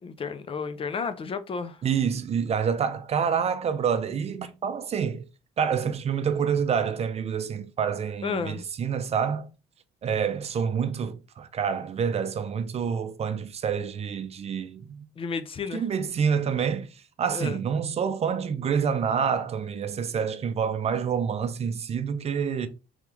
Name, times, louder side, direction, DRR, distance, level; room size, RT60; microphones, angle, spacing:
voice 1, 0.0-1.8 8.2-8.6 15.2-15.8 17.3-17.6, left 5 dB, 35° left, 0.4 m, -32 dB
voice 2, 1.8-5.2 5.6-9.5 10.0-15.1 15.7-22.7, right 7 dB, 40° right, 0.5 m, -27 dB
3.5 x 3.1 x 3.4 m
cardioid pair, 110°, 17 cm